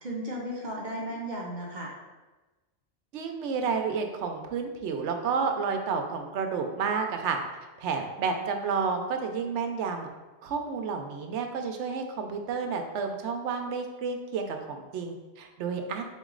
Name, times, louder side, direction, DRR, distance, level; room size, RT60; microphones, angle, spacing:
voice 1, 0.0-1.9, equal, 50° right, -2 dB, 0.7 m, -35 dB
voice 2, 3.1-7.4 7.8-10.1 10.4-16.0, right 5 dB, 80° right, 5 dB, 0.9 m, -30 dB
4.1 x 3.0 x 3.7 m, 1.2 s
omnidirectional pair, 1.2 m